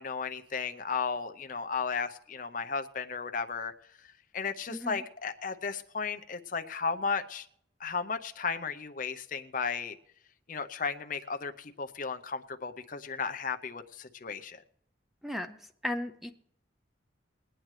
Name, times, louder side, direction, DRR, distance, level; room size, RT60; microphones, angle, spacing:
voice 1, 0.0-3.7 4.3-7.5 7.8-10.0 10.5-14.6, left 5 dB, 45° left, 8 dB, 0.6 m, -34 dB
voice 2, 4.7-5.0 15.2-15.6 15.8-16.3, left 1 dB, ahead, 7 dB, 0.5 m, -35 dB
22.0 x 9.0 x 3.2 m, 0.69 s
head